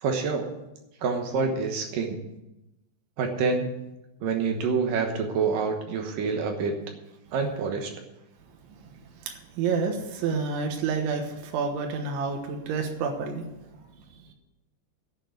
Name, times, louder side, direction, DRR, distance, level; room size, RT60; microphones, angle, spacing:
voice 1, 0.0-0.5 1.0-2.2 3.2-3.7 4.2-6.8 7.3-7.9, right 5 dB, 70° right, 4 dB, 2.3 m, -27 dB
voice 2, 9.6-13.5, right 5 dB, 85° right, 3 dB, 3.7 m, -28 dB
11.5 x 6.7 x 9.5 m, 0.94 s
omnidirectional pair, 5.2 m